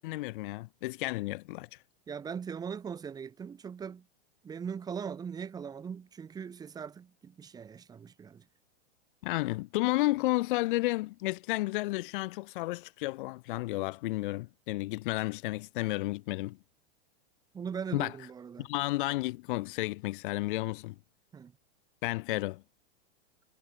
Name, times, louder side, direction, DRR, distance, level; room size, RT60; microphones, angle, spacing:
voice 1, 0.0-1.8 9.2-16.6 17.9-18.1 18.6-20.9 22.0-22.6, left 20 dB, 50° left, 0.9 m, -32 dB
voice 2, 2.1-4.1 4.4-8.5 17.5-18.7 21.3-21.5, right 7 dB, 10° right, 1.0 m, -40 dB
supercardioid pair, 155°, 34 cm